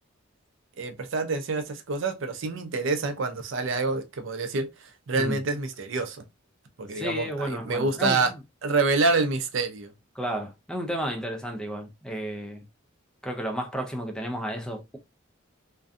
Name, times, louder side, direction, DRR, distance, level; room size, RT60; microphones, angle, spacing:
voice 1, 0.8-6.2 6.8-8.3 8.6-9.9, right 3 dB, 65° right, 0.5 m, -27 dB
voice 2, 6.9-8.2 10.2-12.6 13.2-15.0, equal, 5° left, 0.3 m, -32 dB
2.5 x 2.2 x 2.4 m
head